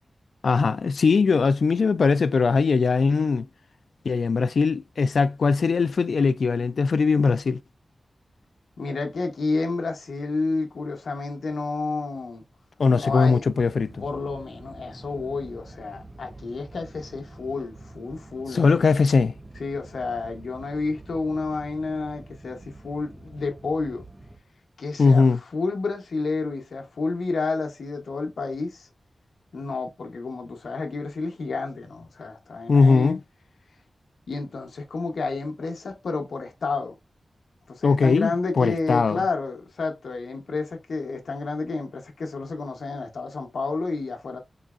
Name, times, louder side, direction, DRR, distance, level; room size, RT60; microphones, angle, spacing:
voice 1, 0.4-3.5 4.0-7.6 12.8-14.0 18.5-19.3 25.0-25.4 32.7-33.2 37.8-39.2, left 4 dB, 70° left, 0.3 m, -20 dB
voice 2, 8.8-12.4 12.9-13.4 14.0-18.6 19.6-24.0 24.8-25.3 25.5-28.9 29.5-33.2 34.3-36.9 37.7-44.4, left 3 dB, 90° left, 0.9 m, -30 dB
sound 1, 13.1-24.4, right 2 dB, 15° right, 0.5 m, -46 dB
3.9 x 3.0 x 2.4 m
wide cardioid pair, 130°, 0 cm